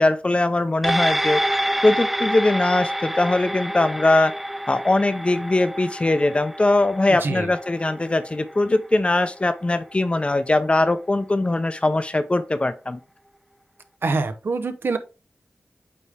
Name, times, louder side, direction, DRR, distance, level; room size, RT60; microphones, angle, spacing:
voice 1, 0.0-1.4 1.8-4.3 4.7-13.0, left 2 dB, 30° left, 0.7 m, -21 dB
sound 1, 0.8-9.5 9.9-10.0, equal, 5° right, 0.3 m, -28 dB
voice 2, 7.2-7.5 14.0-15.0, right 3 dB, 70° right, 0.8 m, -25 dB
8.6 x 3.5 x 3.4 m
wide cardioid pair, 75°, 4 cm